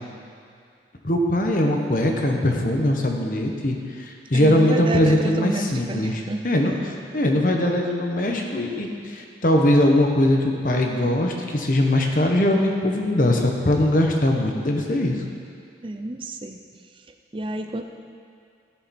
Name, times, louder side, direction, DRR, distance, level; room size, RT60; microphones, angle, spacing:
voice 1, 1.0-15.2, left 1 dB, 50° left, 2 dB, 1.2 m, -21 dB
voice 2, 4.3-6.4 15.8-16.6 17.3-17.8, right 1 dB, 30° right, 5 dB, 0.6 m, -29 dB
17.0 x 6.9 x 4.4 m, 2.4 s
head